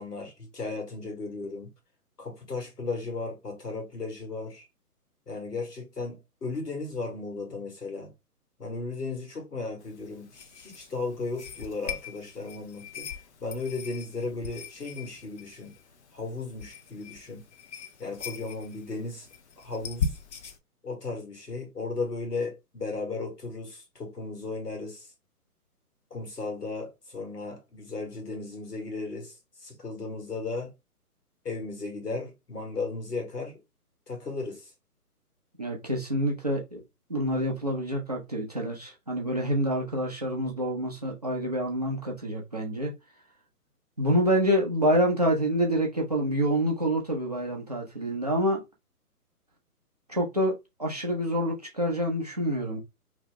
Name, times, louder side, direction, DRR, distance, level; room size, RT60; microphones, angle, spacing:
voice 1, 0.0-1.7 2.2-4.7 5.3-8.1 8.6-13.1 13.4-15.7 16.1-17.4 18.0-19.3 19.6-20.1 20.8-25.1 26.1-30.7 31.4-33.6 34.1-34.7, left 3 dB, 90° left, 1.5 m, -35 dB
sound 1, 9.8-20.6, left 6 dB, 45° left, 0.6 m, -40 dB
voice 2, 35.6-36.8 37.1-42.9 44.0-48.6 50.1-52.8, equal, 30° right, 0.4 m, -27 dB
2.8 x 2.1 x 3.4 m
figure-of-eight pair, 130°, 46 cm